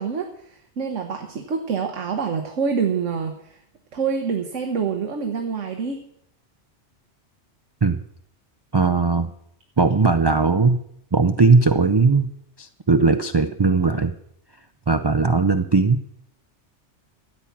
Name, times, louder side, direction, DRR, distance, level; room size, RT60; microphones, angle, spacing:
voice 1, 0.0-3.6 3.9-6.0, right 6 dB, 90° right, 4 dB, 1.5 m, -26 dB
voice 2, 8.7-9.3 9.8-10.8 11.1-12.3 12.6-14.1 14.9-16.0, right 4 dB, 40° right, 7 dB, 0.4 m, -18 dB
13.0 x 8.7 x 5.8 m, 0.72 s
omnidirectional pair, 1.2 m